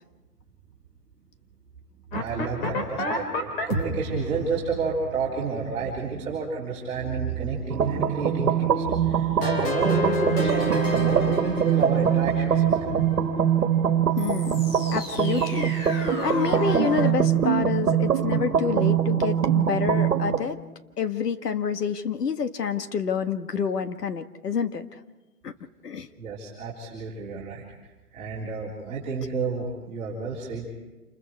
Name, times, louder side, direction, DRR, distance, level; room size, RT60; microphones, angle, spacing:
sound 1, 2.1-6.2 9.4-13.2 14.2-17.1, left 1 dB, 35° left, 3.0 m, -31 dB
voice 1, 2.1-13.3 26.2-27.6 28.1-30.7, right 5 dB, 15° right, -8 dB, 3.6 m, -30 dB
sound 2, 7.7-20.5, right 8 dB, 65° right, 1.8 m, -23 dB
voice 2, 14.2-14.6 14.9-20.6 21.0-25.0 25.4-25.5 25.8-26.1, left 6 dB, 75° left, 9 dB, 1.7 m, -28 dB
28.0 x 21.5 x 4.7 m, 1.2 s
hypercardioid pair, 165°, 47 cm